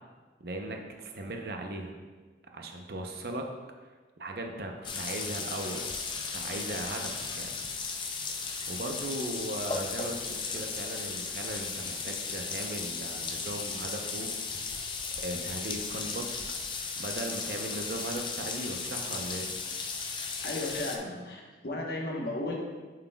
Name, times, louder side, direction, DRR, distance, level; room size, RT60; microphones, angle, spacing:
voice 1, 0.4-2.0 2.5-3.5 4.2-5.8 6.3-7.5 8.7-14.3 15.2-16.3 17.0-19.5, right 1 dB, 55° right, 2 dB, 0.7 m, -38 dB
sound 1, 4.8-21.0, left 4 dB, 25° left, 0.4 m, -36 dB
voice 2, 20.4-22.6, left 2 dB, 55° left, -1 dB, 1.1 m, -34 dB
7.4 x 6.1 x 2.3 m, 1.3 s
head